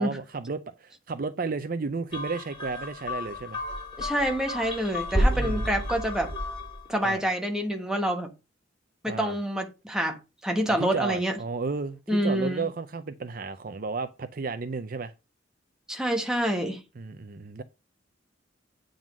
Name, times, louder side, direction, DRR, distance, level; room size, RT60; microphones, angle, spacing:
voice 1, 0.0-3.6 5.3-5.7 7.0-7.2 9.1-9.4 10.7-15.1 17.0-17.6, right 4 dB, 45° right, 0.5 m, -33 dB
sound 1, 2.1-6.9, equal, 25° left, 5.0 m, -30 dB
voice 2, 4.0-6.3 6.9-8.3 9.0-11.4 12.1-12.6 15.9-16.8, equal, 5° right, 1.3 m, -27 dB
9.0 x 3.9 x 6.1 m
head